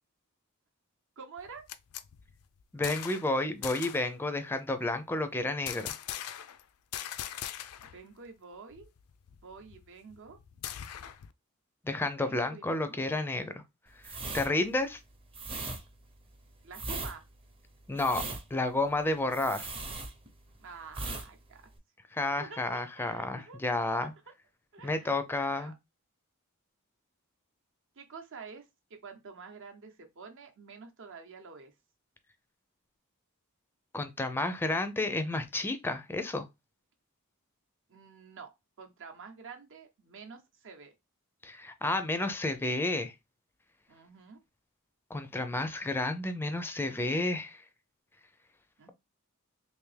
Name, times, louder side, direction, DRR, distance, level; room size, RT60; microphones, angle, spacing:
voice 1, 1.2-1.7 7.8-8.9 9.3-10.4 12.1-13.0 16.6-17.2 20.6-21.6 22.4-23.6 24.0-24.1 24.7-25.1 25.5-25.7 27.9-31.7 37.9-38.5 38.8-40.9 43.9-44.4 48.8-48.9, right 5 dB, 60° right, 0.8 m, -48 dB
sound 1, 1.4-3.3 3.6-4.1 5.7-6.6 6.9-8.0 8.3-8.4 8.7-11.3, left 11 dB, 75° left, 0.4 m, -41 dB
voice 2, 2.7-5.9 11.8-13.6 14.3-15.0 17.9-18.2 18.5-19.7 22.1-24.1 24.8-25.7 33.9-36.5 41.4-43.1 45.1-47.6, left 2 dB, 10° left, 0.4 m, -31 dB
sound 2, 14.0-20.6 20.9-21.3 21.5-21.8, right 3 dB, 25° right, 0.7 m, -38 dB
3.4 x 2.8 x 3.2 m
head